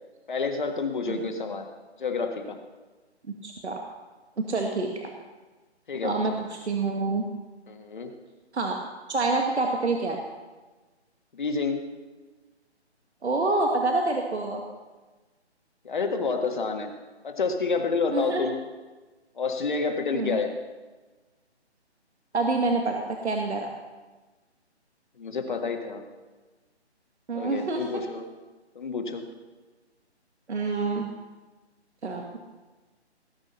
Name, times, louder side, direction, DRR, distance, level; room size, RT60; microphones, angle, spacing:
voice 1, 0.3-1.7 2.0-2.6 5.9-6.2 7.7-8.1 11.3-11.9 15.9-16.9 17.2-18.6 19.4-20.5 25.2-26.0 27.3-28.2 28.8-29.3, left 4 dB, 45° left, 5 dB, 1.7 m, -29 dB
voice 2, 3.4-3.8 4.4-5.1 6.0-7.2 8.5-8.8 9.1-10.2 13.2-14.6 18.1-18.4 20.1-20.4 22.3-23.7 27.3-28.0 30.5-31.1 32.0-32.4, right 3 dB, 70° right, 2 dB, 1.9 m, -27 dB
18.0 x 8.8 x 5.7 m, 1.3 s
hypercardioid pair, 170°, 34 cm